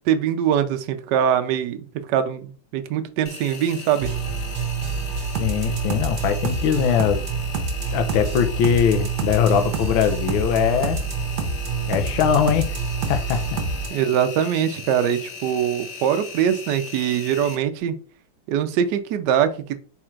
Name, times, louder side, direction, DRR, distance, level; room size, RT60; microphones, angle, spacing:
voice 1, 0.1-4.1 13.9-17.9 18.5-19.8, right 9 dB, 85° right, 0.9 m, -22 dB
Engine, 3.3-17.6, left 5 dB, 50° left, 1.4 m, -38 dB
sound 1, 4.0-13.9, right 4 dB, 60° right, 1.2 m, -27 dB
voice 2, 5.4-7.2 7.9-11.0 11.9-12.8 13.1-13.6, left 8 dB, 75° left, 1.4 m, -21 dB
4.3 x 2.4 x 4.4 m
omnidirectional pair, 2.3 m